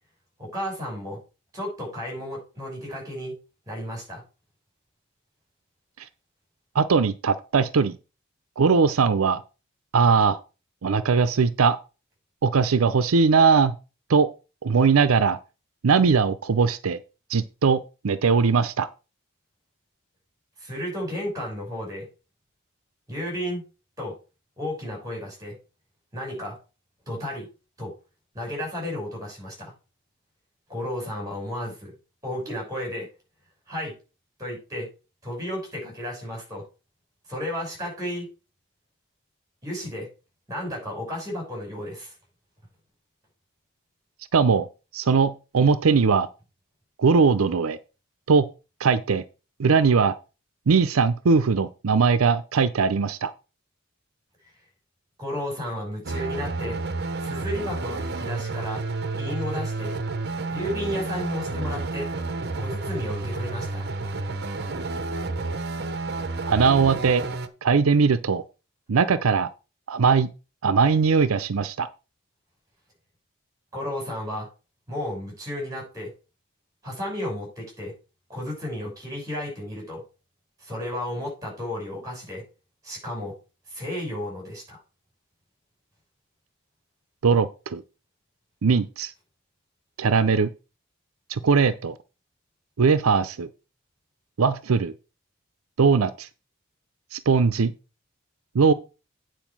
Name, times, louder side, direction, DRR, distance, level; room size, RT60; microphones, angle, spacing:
voice 1, 0.4-1.2 1.5-3.4 3.7-4.2 20.6-22.1 23.1-23.6 24.0-24.2 24.6-25.6 26.1-26.6 27.1-27.5 27.8-27.9 28.3-29.7 30.7-31.9 32.2-33.1 33.7-33.9 34.4-34.9 35.2-36.6 37.3-38.3 39.6-40.1 40.5-42.1 55.2-56.8 57.2-58.8 59.2-59.9 60.5-62.1 62.6-63.9 73.7-74.5 74.9-76.1 76.8-77.9 78.3-80.0 80.6-82.4 82.8-83.4 83.7-84.8, equal, 15° right, 5.8 m, -33 dB
voice 2, 6.7-7.9 8.6-9.4 9.9-10.4 10.8-11.8 12.4-13.7 14.1-14.3 14.6-15.4 15.8-17.0 17.3-18.9 44.3-44.7 44.9-46.3 47.0-47.8 48.3-48.5 48.8-49.2 49.6-50.1 50.7-53.3 66.5-67.2 67.6-68.4 68.9-69.5 69.9-70.3 70.6-71.9 87.2-87.8 88.6-89.1 90.0-90.5 91.3-91.9 92.8-93.5 94.4-94.9 95.8-96.3 97.1-97.7 98.5-98.7, right 5 dB, 85° right, 0.6 m, -20 dB
sound 1, 56.0-67.5, right 3 dB, 50° right, 0.9 m, -30 dB
9.1 x 4.6 x 6.1 m
head